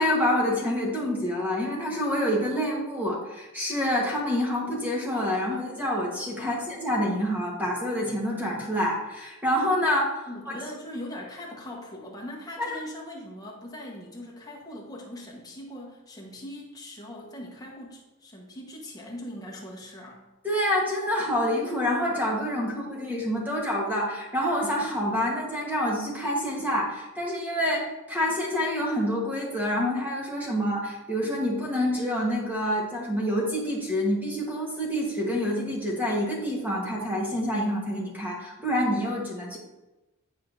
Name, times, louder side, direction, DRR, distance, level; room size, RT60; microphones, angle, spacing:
voice 1, 0.0-10.2 12.6-12.8 20.4-39.6, equal, 10° right, -3 dB, 1.2 m, -27 dB
voice 2, 10.2-20.2, left 1 dB, 15° left, -2 dB, 1.1 m, -41 dB
9.3 x 4.5 x 2.6 m, 1.1 s
head